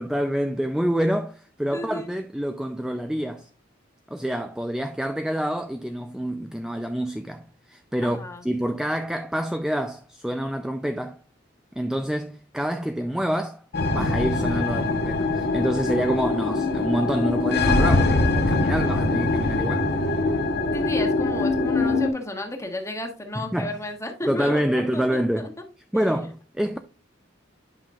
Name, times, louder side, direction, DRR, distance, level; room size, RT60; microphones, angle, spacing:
voice 1, 0.0-3.5 4.1-11.2 11.8-13.6 13.9-19.9 23.4-23.8 24.3-25.5 25.9-26.8, equal, 5° right, 0.3 m, -27 dB
voice 2, 1.7-2.1 8.0-8.4 20.7-25.5 25.9-26.2, left 1 dB, 15° left, 1.3 m, -33 dB
sound 1, 13.7-22.1, left 2 dB, 55° left, 1.1 m, -23 dB
10.5 x 5.6 x 2.4 m
head